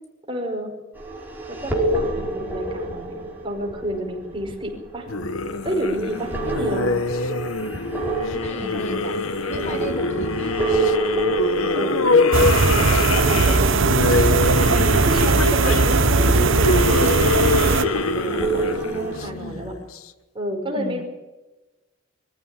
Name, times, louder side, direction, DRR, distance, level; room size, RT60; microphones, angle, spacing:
voice 1, 0.3-0.7 1.5-3.1 3.4-5.1 5.6-6.9 8.6-8.9 9.4-9.7 11.0-12.3 12.9-14.2 14.7-17.1 17.6-19.7 20.3-21.0, equal, 25° right, 2 dB, 5.2 m, -30 dB
sound 1, 1.0-19.3, right 2 dB, 10° right, 4.6 m, -29 dB
sound 2, 5.1-20.0, left 3 dB, 90° left, 1.2 m, -24 dB
voice 2, 8.3-11.0 20.8-21.0, equal, 35° left, 5 dB, 2.2 m, -35 dB
sound 3, 12.3-17.8, right 4 dB, 65° right, 1.0 m, -18 dB
24.0 x 15.0 x 9.2 m, 1.1 s
head